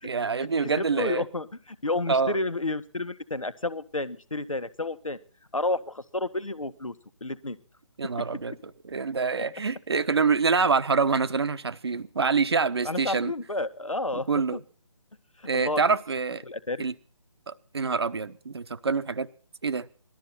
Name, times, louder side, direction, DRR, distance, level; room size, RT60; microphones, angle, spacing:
voice 1, 0.0-1.2 2.1-2.4 8.0-8.6 8.8-13.3 14.3-14.6 15.5-16.4 16.8-16.9 17.5-19.3 19.6-19.9, right 5 dB, 50° right, 13 dB, 1.0 m, -26 dB
voice 2, 0.8-5.2 5.5-7.6 12.8-14.6 15.4-15.8 16.4-16.9, left 2 dB, 80° left, 13 dB, 1.5 m, -31 dB
19.0 x 13.0 x 4.2 m, 0.42 s
figure-of-eight pair, 150°, 17 cm